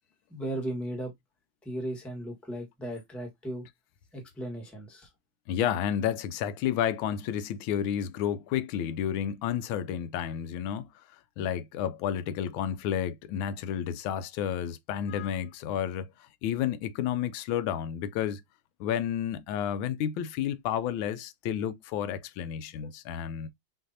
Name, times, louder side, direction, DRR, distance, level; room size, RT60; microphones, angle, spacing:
voice 1, 0.3-1.1 1.6-3.7 4.1-5.1, right 1 dB, ahead, 1.2 m, -36 dB
voice 2, 5.5-11.0 11.4-18.4 18.8-23.5, left 9 dB, 85° left, 1.4 m, -31 dB
5.8 x 3.0 x 2.7 m
omnidirectional pair, 2.1 m